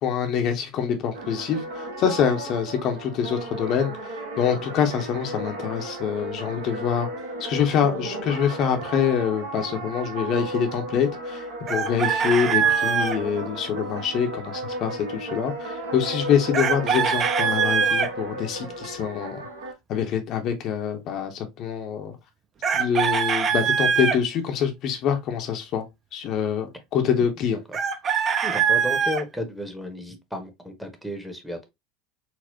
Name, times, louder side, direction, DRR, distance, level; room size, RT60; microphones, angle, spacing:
voice 1, 0.0-7.1 7.4-19.5 19.9-22.2 22.7-25.8 26.1-27.6, left 8 dB, 45° left, 0.6 m, -25 dB
sound 1, 1.1-19.7, right 2 dB, 70° right, 0.8 m, -34 dB
Chicken rooster, 11.7-13.2 16.5-18.1 22.6-24.2 27.7-29.2, right 7 dB, 35° right, 0.4 m, -22 dB
voice 2, 28.4-31.6, left 1 dB, ahead, 0.8 m, -33 dB
4.2 x 2.0 x 2.5 m
figure-of-eight pair, 75°, 0 cm